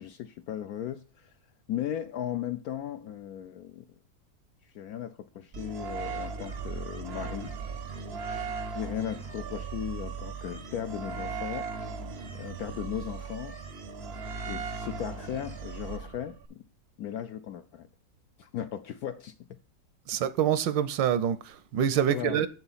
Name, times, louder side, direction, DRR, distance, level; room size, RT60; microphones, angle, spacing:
voice 1, 0.0-1.3 1.7-3.8 4.6-7.6 8.3-11.7 12.4-13.6 14.5-16.6 17.0-17.9 18.4-19.3 22.1-22.4, left 10 dB, 70° left, 0.9 m, -37 dB
sound 1, 5.5-16.5, right 5 dB, 60° right, 0.6 m, -37 dB
voice 2, 20.1-22.5, right 9 dB, 80° right, 1.4 m, -26 dB
7.9 x 6.8 x 4.1 m
omnidirectional pair, 2.0 m